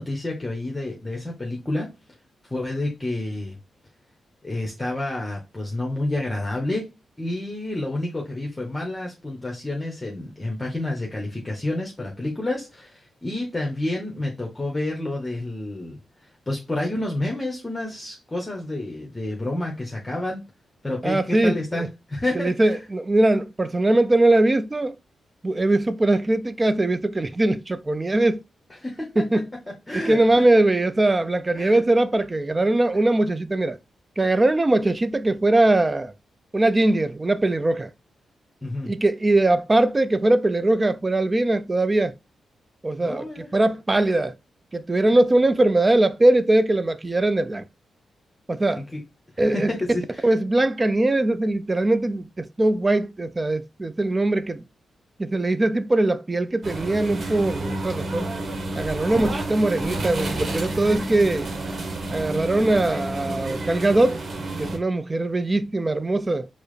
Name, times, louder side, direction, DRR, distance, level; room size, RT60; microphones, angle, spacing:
voice 1, 0.0-1.9 2.4-3.6 4.4-16.0 16.5-20.4 20.8-22.8 28.8-29.2 29.7-30.5 31.5-31.8 38.6-38.9 43.0-43.5 48.8-49.0 49.3-50.3 59.1-59.3, left 1 dB, 20° left, 0.9 m, -29 dB
voice 2, 21.0-21.9 22.3-25.0 25.4-28.4 29.2-29.5 30.0-33.8 34.2-36.1 36.5-37.9 38.9-42.1 42.8-44.3 44.7-47.6 48.5-48.8 49.4-49.7 50.2-54.6 55.2-58.3 58.8-61.5 62.1-64.2 64.6-66.5, right 2 dB, 30° right, 0.4 m, -21 dB
sound 1, 56.6-64.8, right 2 dB, 55° right, 1.0 m, -30 dB
4.5 x 2.0 x 3.1 m
supercardioid pair, 50°, 0 cm